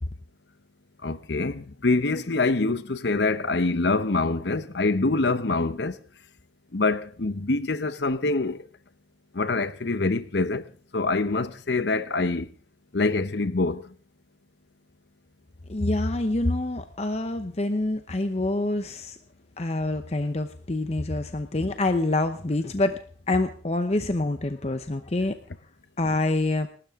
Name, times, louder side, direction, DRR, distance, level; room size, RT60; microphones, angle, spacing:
voice 1, 1.0-6.0 6.7-8.7 9.3-10.6 10.9-12.5 12.9-13.9, left 3 dB, 65° left, 0.8 m, -25 dB
voice 2, 15.7-19.2 19.6-23.0 23.3-25.4 26.0-26.7, left 2 dB, 35° left, 0.8 m, -26 dB
27.5 x 13.0 x 3.7 m
head